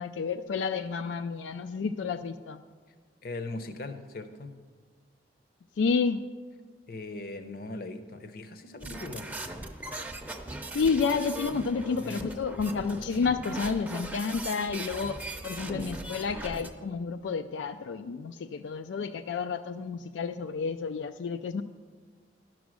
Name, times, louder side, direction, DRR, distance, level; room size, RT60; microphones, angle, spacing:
voice 1, 0.0-2.6 5.8-6.2 10.7-21.6, left 5 dB, 90° left, 9 dB, 0.4 m, -30 dB
voice 2, 3.2-4.5 6.9-9.3 11.9-12.4, left 2 dB, 55° left, 9 dB, 0.7 m, -39 dB
sound 1, 8.8-16.7, right 1 dB, 10° right, 0.5 m, -39 dB
11.0 x 6.2 x 6.2 m, 1.5 s
head